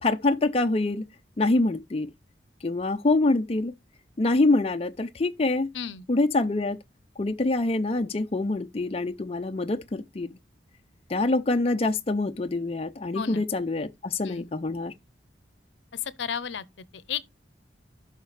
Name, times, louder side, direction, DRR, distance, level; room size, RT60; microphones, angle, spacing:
voice 1, 0.0-1.0 1.4-2.1 2.6-3.7 4.2-5.7 6.1-6.8 7.2-10.4 11.1-14.9, left 2 dB, 30° left, 0.5 m, -25 dB
voice 2, 5.7-6.1 13.1-13.5 14.2-14.5 15.9-17.3, left 8 dB, 80° left, 0.6 m, -34 dB
12.5 x 5.7 x 3.2 m
head